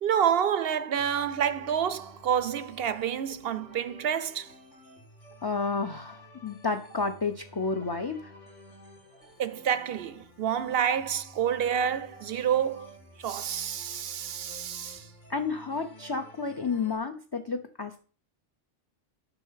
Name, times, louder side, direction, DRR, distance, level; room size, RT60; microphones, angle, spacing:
voice 1, 0.0-4.5 9.4-12.9 13.2-15.1, right 8 dB, 60° right, 0.7 m, -28 dB
sound 1, 1.0-17.0, left 2 dB, 80° left, 3.1 m, -52 dB
voice 2, 5.4-8.3 15.3-18.0, left 4 dB, 25° left, 0.5 m, -31 dB
10.0 x 5.9 x 5.7 m
omnidirectional pair, 1.3 m